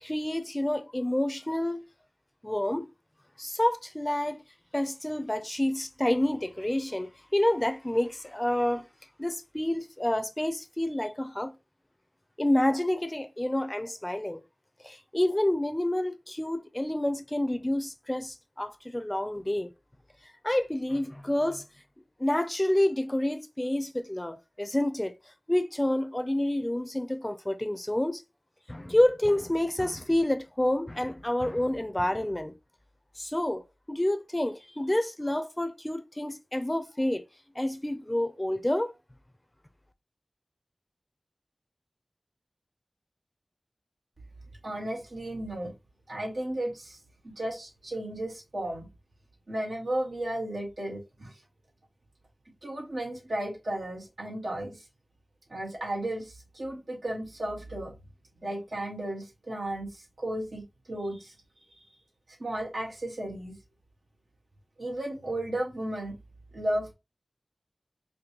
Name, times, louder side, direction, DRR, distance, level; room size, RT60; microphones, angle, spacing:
voice 1, 0.0-1.8 2.4-2.9 3.4-4.4 4.7-8.8 9.2-11.5 12.4-14.4 14.8-19.7 20.4-21.6 22.2-25.1 25.5-28.2 28.7-32.5 33.2-33.6 33.9-37.2 37.6-38.9, left 1 dB, 20° left, 0.5 m, -28 dB
voice 2, 44.6-45.7 46.1-47.0 47.2-48.9 49.5-51.3 52.6-54.8 55.5-57.9 58.4-61.3 62.4-63.6 64.8-66.2 66.5-66.9, right 1 dB, 85° right, 1.6 m, -34 dB
5.1 x 2.2 x 2.9 m
wide cardioid pair, 65°, 0 cm